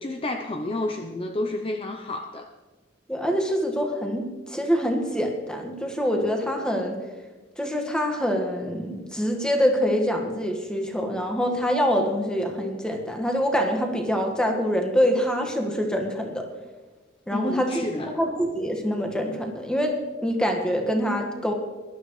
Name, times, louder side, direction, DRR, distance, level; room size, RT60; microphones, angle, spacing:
voice 1, 0.0-2.5 17.3-18.2, left 2 dB, 30° left, 5 dB, 0.6 m, -30 dB
voice 2, 3.1-6.9 7.6-16.4 17.3-17.7 18.1-19.9 20.2-21.5, equal, 5° left, 2 dB, 1.5 m, -25 dB
21.0 x 12.0 x 3.2 m, 1.3 s
head